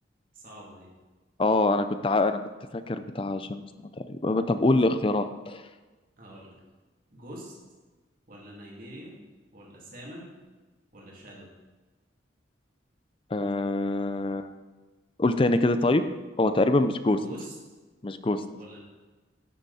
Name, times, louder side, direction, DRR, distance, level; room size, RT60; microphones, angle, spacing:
voice 1, 0.3-0.9 6.2-6.6 7.1-7.5 8.3-9.2 9.5-10.3 10.9-11.5 17.1-17.6 18.5-18.8, equal, 45° right, -3 dB, 2.7 m, -44 dB
voice 2, 1.4-2.4 2.7-3.6 4.1-5.6 13.3-14.5 15.2-16.0 16.4-17.2 18.0-18.4, left 2 dB, 30° left, 10 dB, 0.4 m, -24 dB
11.5 x 8.2 x 4.2 m, 1.2 s
head